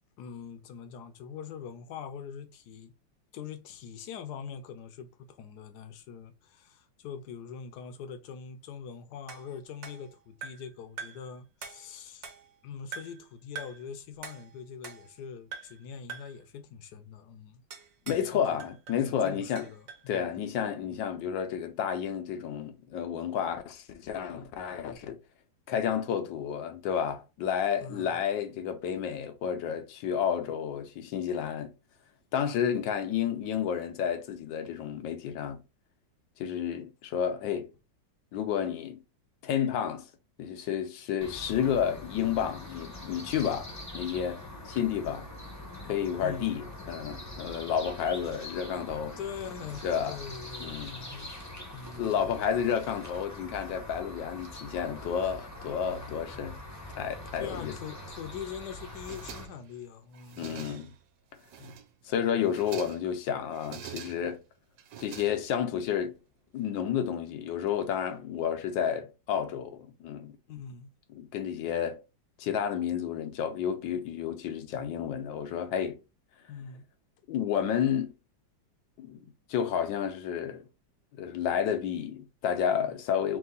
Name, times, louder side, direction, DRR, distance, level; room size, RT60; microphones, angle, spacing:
voice 1, 0.2-2.9 3.3-12.3 12.6-17.6 18.1-18.6 19.0-20.6 20.9-21.0 24.3-24.5 27.8-28.2 46.2-46.6 49.2-51.3 51.7-52.3 57.4-61.0 61.6-61.8 70.5-70.9 76.5-76.8, left 7 dB, 70° left, 1.1 m, -43 dB
sound 1, 9.3-10.7 11.0-11.3 11.6-12.6 12.9-13.3 13.5-13.9 14.2-15.2 15.5-15.8 16.1-16.4 17.7-18.3 18.6-20.1, right 6 dB, 55° right, 1.2 m, -44 dB
voice 2, 18.1-19.7 20.1-25.2 25.7-31.7 32.3-35.6 36.4-37.7 38.3-39.0 39.4-40.1 40.4-45.3 45.8-49.2 49.8-50.2 50.6-51.0 52.0-56.6 57.0-57.7 60.4-60.9 62.0-64.4 65.0-66.1 66.5-70.4 71.1-72.0 72.4-76.0 77.3-78.1 79.0-80.6 81.2-83.4, left 8 dB, 85° left, 1.4 m, -31 dB
sound 2, 41.2-59.5, left 1 dB, 15° left, 0.6 m, -43 dB
sound 3, 58.9-59.8 60.1-61.0 61.4-62.0 62.4-63.1 63.5-64.4 64.8-65.8, right 9 dB, 75° right, 1.3 m, -46 dB
3.6 x 3.0 x 3.8 m
omnidirectional pair, 2.0 m